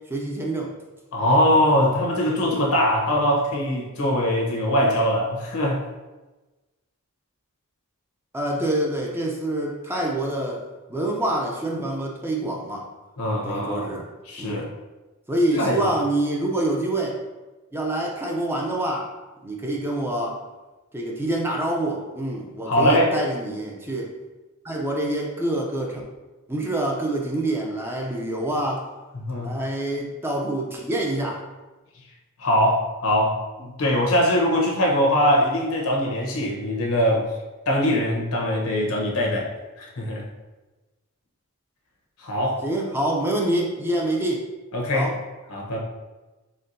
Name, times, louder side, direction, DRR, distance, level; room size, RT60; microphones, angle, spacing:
voice 1, 0.1-0.7 8.3-10.6 10.9-12.9 13.4-14.1 14.4-14.7 15.3-17.2 17.7-19.1 19.4-20.4 20.9-24.1 24.6-26.0 26.5-28.9 29.4-31.4 42.6-44.4 44.9-45.2, right 1 dB, 10° right, -1 dB, 0.4 m, -26 dB
voice 2, 1.1-5.8 13.2-14.0 14.3-14.7 15.5-15.9 22.7-23.1 29.1-29.5 32.4-37.3 37.7-39.5 39.8-40.3 42.2-42.7 44.7-45.1 45.5-45.8, equal, 75° left, -1 dB, 0.9 m, -22 dB
4.3 x 3.6 x 2.6 m, 1.2 s
head